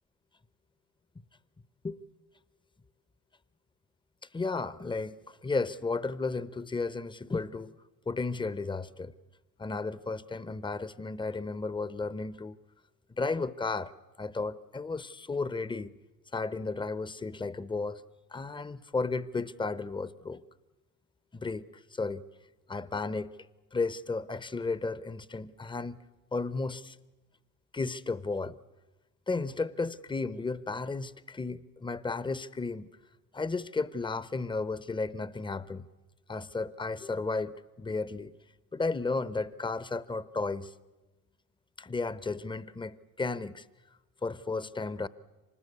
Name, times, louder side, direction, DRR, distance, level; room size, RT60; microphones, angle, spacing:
voice 1, 4.3-7.7 8.1-9.1 9.6-12.6 13.1-13.9 14.2-15.9 16.3-18.0 18.3-20.4 21.3-22.2 22.7-23.4 23.7-26.0 26.3-27.0 27.7-28.6 29.3-32.9 33.3-35.9 36.3-38.3 38.7-40.7 41.8-43.7 44.2-45.1, left 3 dB, 10° left, 18 dB, 0.8 m, -33 dB
25.5 x 20.0 x 8.4 m, 1.1 s
hypercardioid pair, 70°, 50 cm